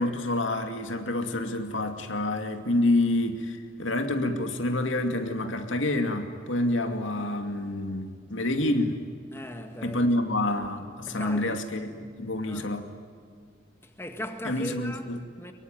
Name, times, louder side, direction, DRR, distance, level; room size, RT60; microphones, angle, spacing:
voice 1, 0.0-9.0 9.8-12.9 14.4-15.2, left 1 dB, 85° left, 2.4 m, -28 dB
voice 2, 9.3-10.1 11.1-11.6 12.5-12.7 13.8-15.1 15.4-15.5, equal, 15° left, 1.7 m, -38 dB
24.0 x 23.0 x 9.3 m
head